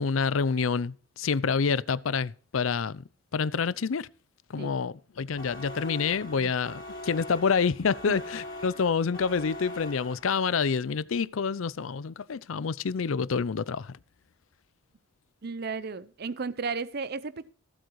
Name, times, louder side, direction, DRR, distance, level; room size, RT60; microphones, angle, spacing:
voice 1, 0.0-3.0 3.3-4.1 4.5-14.0, left 5 dB, 85° left, 0.5 m, -28 dB
sound 1, 5.4-10.6, left 1 dB, 45° left, 2.7 m, -42 dB
voice 2, 15.4-17.5, right 4 dB, 50° right, 0.6 m, -34 dB
15.0 x 7.8 x 4.7 m
head